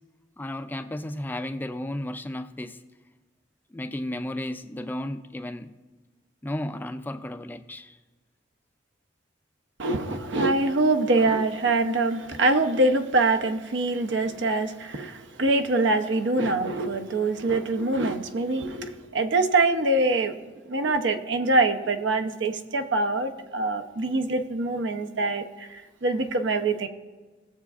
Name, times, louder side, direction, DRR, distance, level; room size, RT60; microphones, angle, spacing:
voice 1, 0.4-2.8 3.7-5.7 6.4-8.0, left 1 dB, 10° left, 0.3 m, -33 dB
voice 2, 9.8-20.3 20.7-26.9, right 2 dB, 75° right, 0.7 m, -24 dB
17.5 x 6.9 x 2.4 m
head